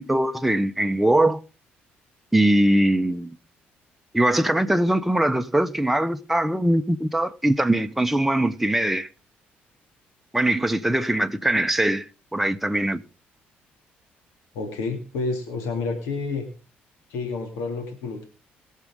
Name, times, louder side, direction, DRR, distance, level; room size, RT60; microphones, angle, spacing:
voice 1, 0.0-1.4 2.3-3.4 4.1-9.1 10.3-12.1 12.3-13.0, right 1 dB, 5° right, 0.8 m, -21 dB
voice 2, 14.5-16.5 17.1-18.3, left 4 dB, 85° left, 2.3 m, -29 dB
22.0 x 7.4 x 3.7 m
supercardioid pair, 75°, 4 cm